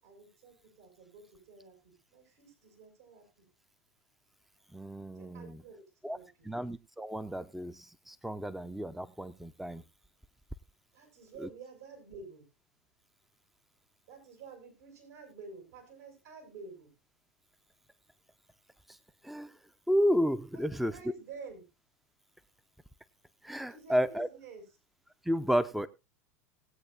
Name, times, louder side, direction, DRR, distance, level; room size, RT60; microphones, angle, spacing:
voice 1, 0.0-3.5 5.1-6.5 10.9-12.5 14.1-16.9 20.5-21.7 23.7-24.6, right 4 dB, 70° right, 1 dB, 6.9 m, -50 dB
voice 2, 4.7-5.6 6.0-6.2 6.4-9.8 11.4-11.5 18.9-19.0 19.2-19.6 19.9-21.0 23.4-24.3 25.2-25.9, equal, ahead, 13 dB, 0.7 m, -32 dB
20.0 x 8.4 x 2.6 m, 0.27 s
hypercardioid pair, 90°, 9 cm